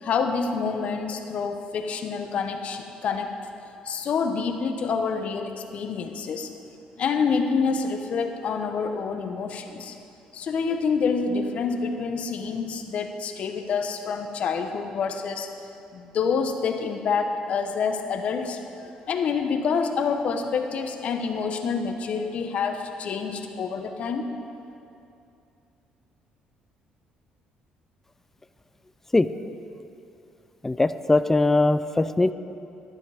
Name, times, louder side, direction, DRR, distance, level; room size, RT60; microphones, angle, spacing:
voice 1, 0.0-3.3 3.8-6.5 7.0-9.9 10.3-15.5 15.9-18.6 19.1-24.3, left 5 dB, 55° left, 6 dB, 1.0 m, -27 dB
voice 2, 30.6-32.3, left 2 dB, 15° left, 12 dB, 0.4 m, -21 dB
11.5 x 11.0 x 5.0 m, 2.7 s
cardioid pair, 100°, 3 cm